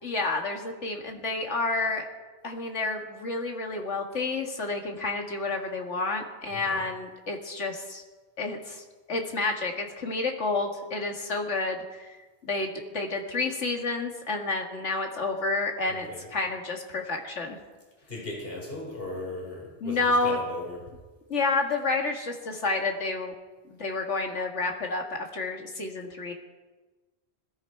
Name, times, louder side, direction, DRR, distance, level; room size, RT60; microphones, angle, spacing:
voice 1, 0.0-2.1 2.4-8.0 8.4-12.2 12.4-17.6 19.8-20.4 21.3-23.3 23.7-25.0 25.3-26.3, left 3 dB, 85° left, 3 dB, 2.3 m, -30 dB
voice 2, 6.5-6.8 15.8-16.3 18.1-20.8, left 2 dB, 55° left, -2 dB, 4.4 m, -38 dB
20.5 x 15.0 x 4.6 m, 1.3 s
omnidirectional pair, 1.2 m